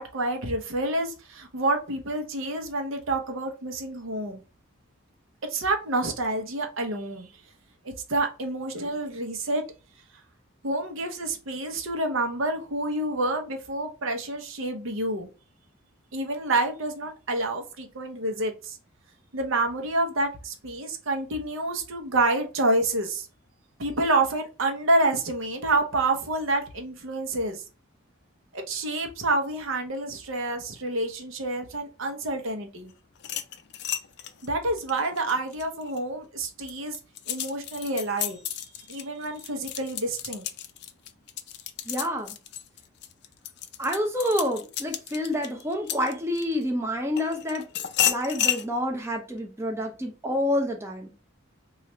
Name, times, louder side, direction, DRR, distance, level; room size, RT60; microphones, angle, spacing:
voice 1, 0.0-4.4 5.4-7.3 7.8-9.6 10.6-15.3 16.1-18.8 19.3-23.3 23.8-27.6 28.5-32.9 34.4-37.0 37.3-38.4 38.9-40.5, right 2 dB, 75° right, 0.8 m, -28 dB
sound 1, 33.2-36.0 36.5-46.6 47.2-48.7, left 11 dB, 50° left, 0.3 m, -32 dB
voice 2, 41.9-42.4 43.8-47.7 48.1-51.1, left 1 dB, 10° right, 0.5 m, -28 dB
3.1 x 2.4 x 4.3 m
head